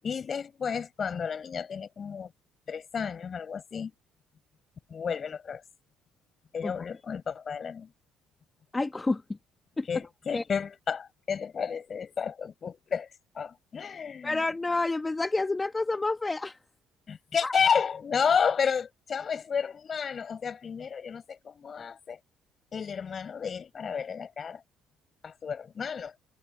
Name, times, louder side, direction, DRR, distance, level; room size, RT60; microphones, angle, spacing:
voice 1, 0.0-2.3 2.7-3.9 4.9-5.6 6.5-7.9 9.9-13.1 13.4-14.4 17.1-22.2 22.7-24.6 25.2-26.1, left 6 dB, 45° left, 7.0 m, -31 dB
voice 2, 8.7-9.2 9.8-9.9 10.3-10.4 14.2-16.6 17.4-17.5, left 3 dB, 20° left, 2.5 m, -29 dB
open air
hypercardioid pair, 55°, 0 cm